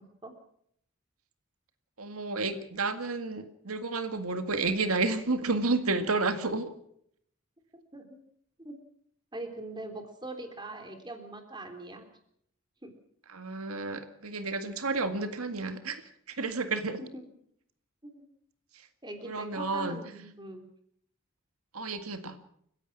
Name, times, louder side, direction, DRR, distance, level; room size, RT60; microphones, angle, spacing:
voice 1, 2.0-6.7 13.3-16.0 16.3-17.0 19.2-20.0 21.7-22.4, right 3 dB, 90° right, 9 dB, 1.9 m, -31 dB
voice 2, 7.7-8.2 8.6-8.7 9.3-12.1 12.8-12.9 17.1-17.2 18.0-18.2 19.0-20.7, right 2 dB, 20° right, 5 dB, 3.4 m, -42 dB
29.5 x 16.0 x 6.1 m, 0.69 s
head